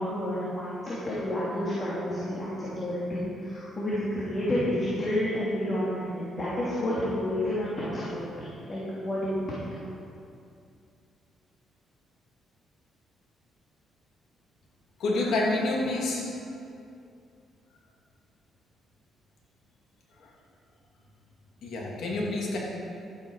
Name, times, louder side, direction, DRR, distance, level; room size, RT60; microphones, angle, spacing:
voice 1, 0.0-9.6, left 1 dB, 35° left, -8 dB, 2.8 m, -30 dB
voice 2, 15.0-16.3 20.2-20.3 21.6-22.6, left 2 dB, 70° left, -3 dB, 2.7 m, -28 dB
12.5 x 8.9 x 4.9 m, 2.5 s
cardioid pair, 90°, 0 cm